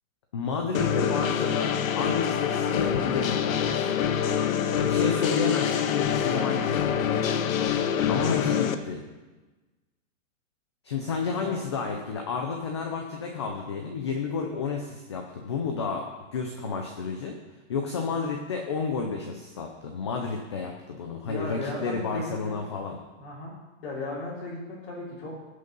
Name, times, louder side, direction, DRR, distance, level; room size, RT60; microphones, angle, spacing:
voice 1, 0.3-3.9 4.9-7.1 8.1-9.0 10.8-16.0 16.3-17.3 17.7-23.0, left 5 dB, 20° left, 3 dB, 0.5 m, -31 dB
sound 1, 0.7-8.7, left 8 dB, 85° left, 1.1 m, -25 dB
voice 2, 11.4-11.9 21.2-23.5 23.8-25.4, left 2 dB, 40° left, -8 dB, 3.4 m, -37 dB
17.0 x 6.5 x 5.3 m, 1.2 s
supercardioid pair, 180°, 40 cm